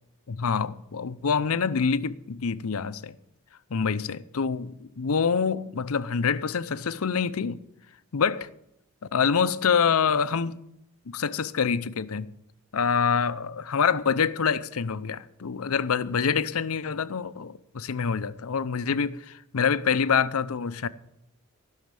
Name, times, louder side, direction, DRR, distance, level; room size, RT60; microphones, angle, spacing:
voice 1, 0.3-3.2 3.7-7.6 8.1-8.5 9.1-10.6 11.1-12.3 12.7-20.9, left 6 dB, 70° left, 0.6 m, -26 dB
14.5 x 6.4 x 8.9 m
head